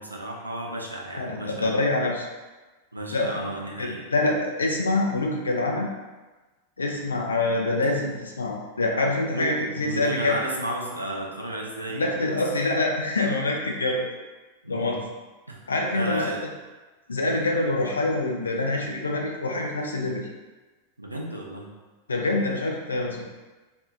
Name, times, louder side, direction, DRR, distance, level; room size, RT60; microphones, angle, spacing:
voice 1, 0.0-1.7 2.9-4.0 9.3-12.4 14.6-15.0 15.5-15.6 15.9-16.4 21.0-21.7, right 1 dB, 85° right, -1 dB, 0.4 m, -33 dB
voice 2, 1.1-2.2 3.1-3.3 3.8-5.9 6.8-10.4 11.9-14.1 14.7-15.0 15.7-16.2 17.1-20.2 22.1-23.2, left 2 dB, 75° left, 0 dB, 0.4 m, -25 dB
2.6 x 2.3 x 2.4 m, 1.2 s
figure-of-eight pair, 90°, 0 cm